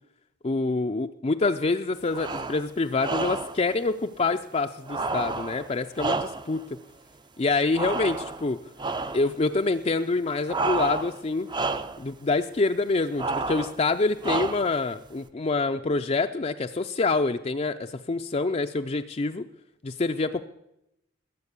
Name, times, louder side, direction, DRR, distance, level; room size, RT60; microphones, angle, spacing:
voice 1, 0.4-6.6 7.4-8.6 9.1-11.5 12.0-19.4 19.8-20.4, left 3 dB, 30° left, 6 dB, 0.4 m, -26 dB
sound 1, 2.1-2.6 3.0-3.6 4.9-6.6 7.7-8.5 8.8-9.3 10.5-11.2 11.5-12.0 13.2-13.8 14.2-14.8, right 3 dB, 20° right, 0.5 m, -30 dB
20.0 x 7.6 x 8.2 m, 0.83 s
head